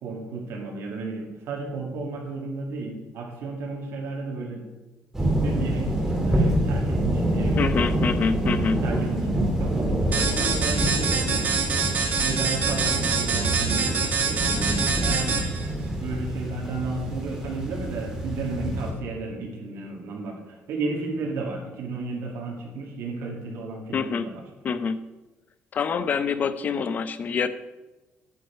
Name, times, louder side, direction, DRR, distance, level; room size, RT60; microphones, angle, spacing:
voice 1, 0.0-4.6 5.2-7.7 8.5-15.4 16.0-24.4, right 3 dB, 75° right, -1 dB, 2.2 m, -33 dB
sound 1, 5.1-18.9, right 1 dB, 10° right, 2.0 m, -26 dB
voice 2, 7.6-8.8 23.9-24.3 24.6-25.0 25.7-27.5, left 6 dB, 40° left, 13 dB, 0.6 m, -26 dB
sound 2, 10.1-15.7, right 5 dB, 40° right, 1.7 m, -25 dB
9.5 x 9.5 x 4.5 m, 1.1 s
cardioid pair, 145°, 4 cm